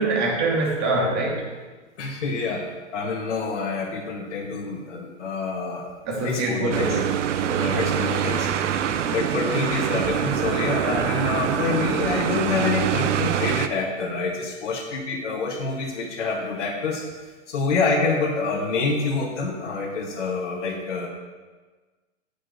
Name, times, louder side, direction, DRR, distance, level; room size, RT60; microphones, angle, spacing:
voice 1, 0.0-1.5 6.1-7.9, right 2 dB, 40° right, -1 dB, 2.7 m, -25 dB
voice 2, 2.0-2.6 2.9-7.0 7.6-8.5 9.1-17.0 17.5-21.1, left 4 dB, 80° left, -4 dB, 1.9 m, -27 dB
sound 1, 6.7-13.7, right 9 dB, 85° right, 0.8 m, -25 dB
8.3 x 6.3 x 6.7 m, 1.3 s
hypercardioid pair, 150°, 36 cm